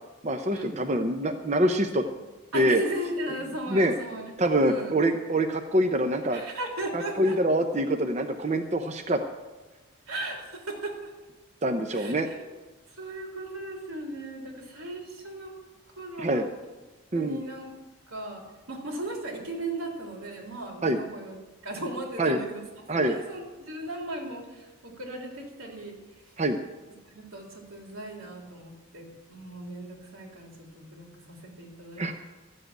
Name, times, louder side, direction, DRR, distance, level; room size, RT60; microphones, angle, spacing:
voice 1, 0.2-2.0 2.5-2.8 3.7-3.9 4.4-6.4 6.9-9.2 11.6-12.3 16.2-16.5 17.1-17.4 20.8-21.0 22.2-22.4 22.9-23.2 26.4-26.6 32.0-32.1, right 1 dB, 35° right, 5 dB, 0.7 m, -25 dB
voice 2, 2.5-4.9 6.3-7.4 10.1-11.1 11.9-12.5 12.9-15.5 16.0-16.5 17.1-17.7 18.1-21.4 21.6-22.6 22.9-26.0 27.1-32.1, right 1 dB, 90° right, 0 dB, 3.6 m, -37 dB
13.5 x 7.7 x 9.1 m, 1.2 s
head